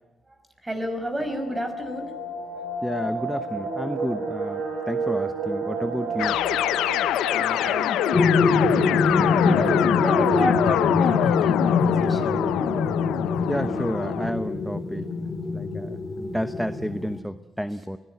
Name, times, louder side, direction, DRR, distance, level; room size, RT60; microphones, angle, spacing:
voice 1, 0.6-2.1 7.3-8.2 9.2-12.4, right 1 dB, 15° right, 7 dB, 5.5 m, -31 dB
sound 1, 1.2-12.0 12.3-12.4 12.7-12.9 13.4-13.8 14.3-14.4 14.6-15.1 15.4-15.5, right 2 dB, 80° right, 7.0 m, -33 dB
voice 2, 2.8-6.4 13.5-15.1 15.5-18.0, equal, ahead, 11 dB, 0.9 m, -31 dB
sound 2, 6.2-14.3, left 13 dB, 90° left, 0.7 m, -24 dB
sound 3, 8.1-17.2, left 3 dB, 25° left, 3.5 m, -24 dB
23.5 x 17.5 x 9.4 m, 1.1 s
cardioid pair, 90°, 0 cm